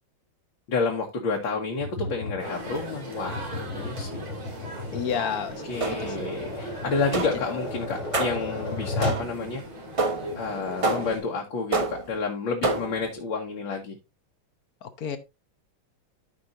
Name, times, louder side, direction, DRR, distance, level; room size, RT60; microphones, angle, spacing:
voice 1, 0.7-4.3 5.1-5.3 5.6-9.6 10.3-14.0, left 4 dB, 70° left, 2.2 m, -30 dB
Tap, 1.8-9.3, left 2 dB, 85° left, 3.3 m, -35 dB
sound 1, 2.4-11.2, right 1 dB, 90° right, 3.7 m, -39 dB
voice 2, 4.9-5.5 5.9-6.0 15.0-15.2, left 7 dB, 55° left, 1.3 m, -28 dB
sound 2, 5.8-6.3 7.1-7.6 8.1-8.5 9.0-9.5 10.0-10.4 10.8-11.3 11.7-12.2 12.6-13.1, right 3 dB, 55° right, 0.3 m, -28 dB
14.0 x 5.4 x 2.6 m
omnidirectional pair, 2.2 m